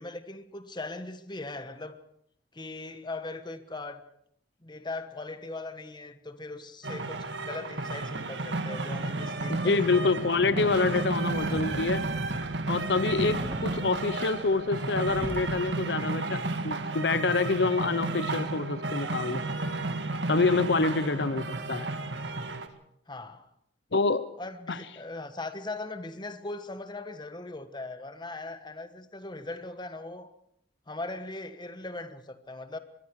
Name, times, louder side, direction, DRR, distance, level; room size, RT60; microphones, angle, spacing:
voice 1, 0.0-2.0 2.5-4.0 4.6-9.8 10.1-10.3 21.0-21.1 23.1-23.5 24.4-30.3 30.9-32.8, left 2 dB, 25° left, 1.3 m, -39 dB
sound 1, 6.8-22.7, right 2 dB, 85° right, 1.8 m, -32 dB
voice 2, 9.5-12.0 12.7-19.4 20.3-21.9 23.9-24.2 24.7-24.8, left 3 dB, 70° left, 0.8 m, -27 dB
sound 2, 10.4-14.7 14.9-15.7, equal, 10° right, 3.1 m, -40 dB
25.0 x 21.5 x 4.8 m
head